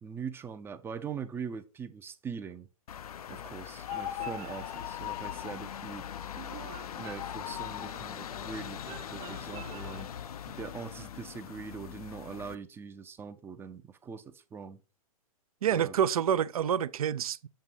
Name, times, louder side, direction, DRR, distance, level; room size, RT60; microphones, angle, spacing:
voice 1, 0.0-2.7 3.3-6.1 7.0-10.1 10.5-14.8 15.7-16.0, right 6 dB, 10° right, 0.5 m, -42 dB
sound 1, 2.9-12.5, left 9 dB, 75° left, 0.5 m, -42 dB
sound 2, 3.8-5.6 6.9-8.0, left 12 dB, 35° left, 0.7 m, -39 dB
sound 3, 3.9-5.0 6.4-7.8 8.9-10.3, right 11 dB, 35° right, 0.8 m, -49 dB
voice 2, 15.6-17.5, right 9 dB, 75° right, 0.5 m, -27 dB
7.6 x 2.8 x 5.4 m
hypercardioid pair, 130°, 19 cm